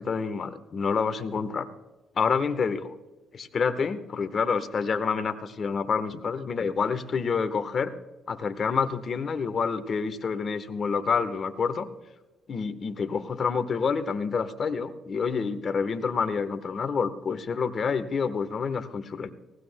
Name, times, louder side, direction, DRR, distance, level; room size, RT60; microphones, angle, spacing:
voice 1, 0.0-1.7 2.1-2.9 3.3-7.9 8.3-11.9 12.5-19.3, left 5 dB, 50° left, 10 dB, 1.1 m, -28 dB
19.0 x 17.5 x 2.2 m, 1.1 s
cardioid pair, 90°, 0 cm